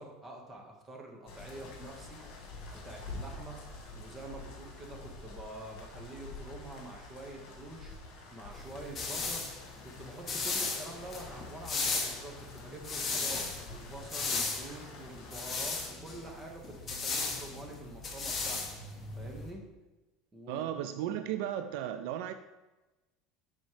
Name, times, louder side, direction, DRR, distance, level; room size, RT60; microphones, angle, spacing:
voice 1, 0.0-2.2 2.7-3.6 3.9-7.9 8.3-9.5 9.7-13.4 13.7-18.6 19.2-19.6 20.3-20.6, right 1 dB, 20° right, 1 dB, 1.4 m, -46 dB
sound 1, 1.3-15.9, left 2 dB, 60° left, 2.2 m, -48 dB
sound 2, 8.5-19.5, left 4 dB, 25° left, 1.2 m, -36 dB
voice 2, 20.5-22.3, right 11 dB, 70° right, 10 dB, 0.3 m, -35 dB
11.5 x 4.2 x 3.2 m, 1.1 s
supercardioid pair, 145°, 0 cm